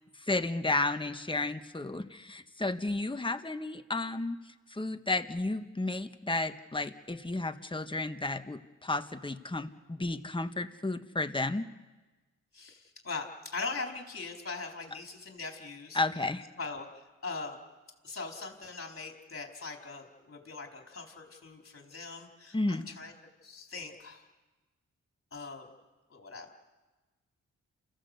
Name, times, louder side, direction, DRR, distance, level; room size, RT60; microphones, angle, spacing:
voice 1, 0.3-4.4 4.7-11.7 15.9-16.4 22.5-22.9, left 2 dB, 15° left, 8 dB, 1.5 m, -32 dB
voice 2, 12.5-16.0 16.6-17.6 18.0-23.1 23.4-24.2 25.3-25.7 26.1-26.5, left 4 dB, 45° left, 2 dB, 4.4 m, -41 dB
28.5 x 15.0 x 8.1 m, 1.2 s
cardioid pair, 50°, 31 cm